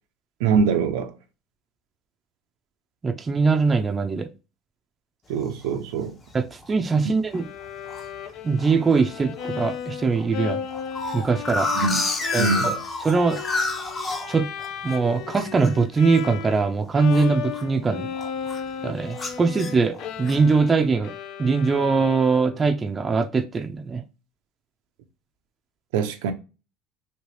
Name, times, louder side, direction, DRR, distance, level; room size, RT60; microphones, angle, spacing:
voice 1, 0.4-1.1 5.3-6.1 7.0-7.2 11.7-12.0 12.4-12.8 25.9-26.3, right 5 dB, 85° right, 0.6 m, -23 dB
voice 2, 3.0-4.3 6.3-7.5 8.4-10.6 11.1-11.7 12.3-12.7 13.0-13.4 14.3-14.5 14.8-18.1 18.8-21.1 21.4-24.0, right 4 dB, 25° right, 0.4 m, -22 dB
sound 1, 5.4-5.8 6.3-6.4 6.6-7.0 7.3-8.0 8.6-9.0 9.4-9.5 9.7-9.8 10.2-15.0 15.3-17.8 18.1-18.7 19.1-20.5, left 2 dB, 25° left, 0.7 m, -30 dB
Bowed string instrument, 7.3-16.7 16.9-22.8, left 8 dB, 60° left, 0.5 m, -35 dB
3.1 x 2.8 x 3.0 m
supercardioid pair, 110°, 0 cm